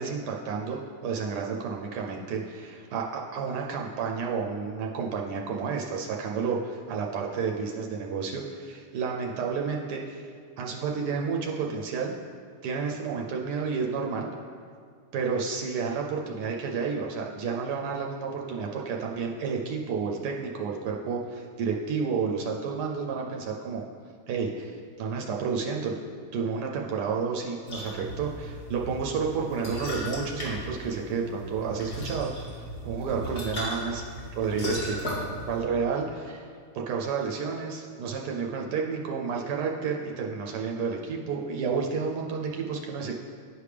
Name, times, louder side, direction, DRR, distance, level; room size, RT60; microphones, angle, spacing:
voice 1, 0.0-10.3 10.6-12.1 12.6-14.3 15.1-23.8 24.3-26.0 26.3-34.0 34.3-35.0 35.5-36.5 36.7-43.1, right 5 dB, 85° right, 0 dB, 1.2 m, -31 dB
sound 1, 27.7-35.6, equal, 65° left, 2.4 m, -36 dB
9.9 x 5.0 x 3.3 m, 2.1 s
omnidirectional pair, 1.7 m